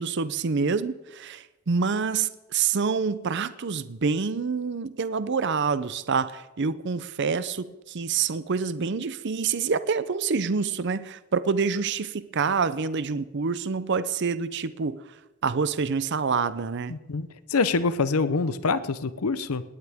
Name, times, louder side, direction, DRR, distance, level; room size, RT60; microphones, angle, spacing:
voice 1, 0.0-15.0 15.4-16.9, right 5 dB, 55° right, 14 dB, 0.6 m, -27 dB
voice 2, 16.9-19.6, left 4 dB, 80° left, 14 dB, 0.7 m, -25 dB
19.0 x 18.5 x 3.6 m, 1.0 s
head